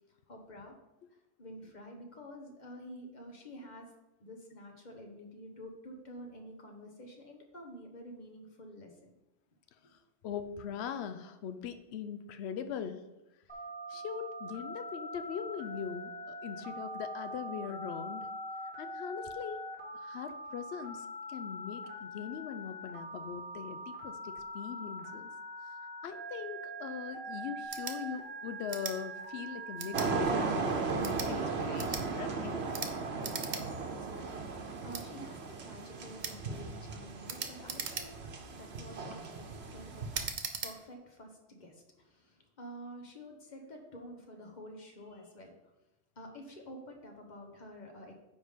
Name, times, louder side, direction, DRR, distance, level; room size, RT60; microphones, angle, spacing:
voice 1, 0.3-0.7 1.4-3.9 4.2-9.1 9.8-9.9 33.2-38.2 38.5-40.1 40.6-45.5 46.2-48.2, equal, 40° left, 2 dB, 1.3 m, -49 dB
voice 2, 10.2-13.0 13.9-18.3 18.8-19.7 19.9-25.3 26.0-32.6, left 8 dB, 75° left, 10 dB, 0.9 m, -41 dB
Telephone, 13.5-30.2, right 1 dB, 10° left, 1.8 m, -43 dB
sound 1, 27.6-28.0 28.7-29.0 29.8-30.1 30.9-31.3 31.8-32.0 32.7-32.9 33.2-33.6 34.0-34.1 34.9-35.0 36.2-36.4 37.3-38.3 38.9-39.2 40.1-40.7, right 5 dB, 50° right, 0.8 m, -39 dB
sound 2, 29.9-40.3, right 4 dB, 70° right, 1.1 m, -36 dB
9.4 x 3.7 x 5.1 m, 1.0 s
omnidirectional pair, 1.1 m